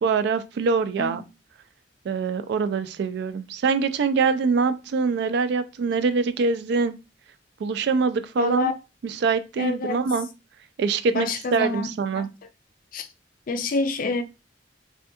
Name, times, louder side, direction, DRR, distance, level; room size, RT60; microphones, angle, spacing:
voice 1, 0.0-1.2 2.1-6.9 7.6-8.7 9.0-10.3 10.8-12.3, right 4 dB, 65° right, 0.3 m, -24 dB
voice 2, 8.4-8.7 9.6-10.0 11.1-12.2 12.9-13.1 13.5-14.2, left 3 dB, 50° left, 0.4 m, -27 dB
3.3 x 2.2 x 2.8 m
head